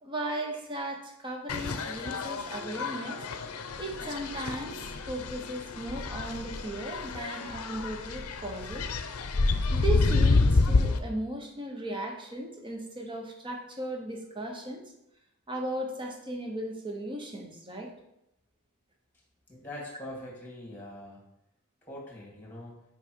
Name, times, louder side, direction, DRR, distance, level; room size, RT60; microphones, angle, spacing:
voice 1, 0.0-3.2 3.8-4.7 5.1-8.9 9.7-14.8 15.5-17.9, right 1 dB, 20° right, 2 dB, 1.0 m, -36 dB
sound 1, 1.5-11.0, left 3 dB, 75° left, 0.6 m, -28 dB
voice 2, 19.5-21.2 21.9-22.8, left 1 dB, 10° left, -2 dB, 2.0 m, -42 dB
6.0 x 4.6 x 4.6 m, 0.84 s
head